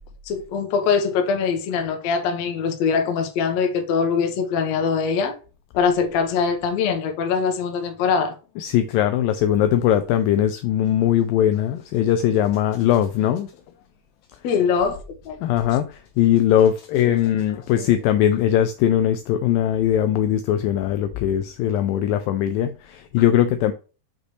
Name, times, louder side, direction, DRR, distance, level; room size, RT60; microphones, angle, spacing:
voice 1, 0.3-5.3 5.7-8.3 14.4-15.0 15.3-15.4 17.8-17.9, left 6 dB, 65° left, 1.8 m, -22 dB
voice 2, 8.6-13.5 15.4-23.7, left 11 dB, 85° left, 2.0 m, -20 dB
6.5 x 5.2 x 3.1 m
omnidirectional pair, 4.5 m